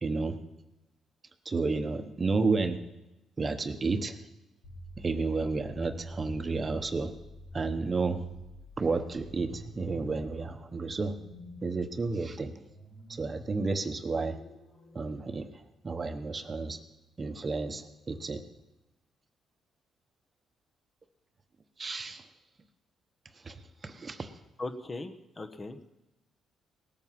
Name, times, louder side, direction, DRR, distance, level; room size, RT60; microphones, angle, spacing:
voice 1, 0.0-0.4 1.4-2.8 3.4-4.2 5.0-7.1 7.5-8.2 8.8-11.1 11.6-12.5 13.1-14.4 14.9-16.8 17.2-18.4 21.8-22.3 23.3-24.3, right 3 dB, 30° right, 8 dB, 1.0 m, -31 dB
sound 1, 4.6-15.0, right 1 dB, 70° left, 5.3 m, -47 dB
voice 2, 24.6-25.9, left 2 dB, 30° left, 8 dB, 1.1 m, -39 dB
18.0 x 9.1 x 5.8 m, 0.98 s
cardioid pair, 90°, 0 cm